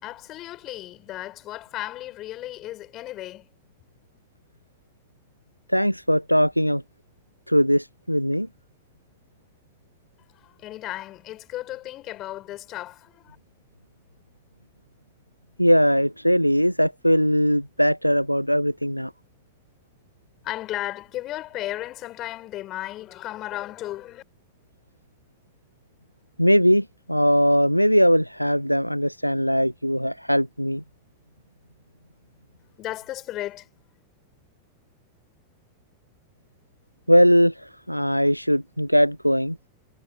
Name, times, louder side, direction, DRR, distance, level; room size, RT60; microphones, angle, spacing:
voice 1, 0.0-3.5 10.3-13.4 20.4-24.2 32.8-33.7, left 15 dB, 35° left, 4.6 m, -35 dB
voice 2, 5.7-6.8 7.5-8.5 15.6-19.1 26.4-30.8 37.1-39.6, equal, 90° left, 0.3 m, -20 dB
figure-of-eight pair, 90°, 0 cm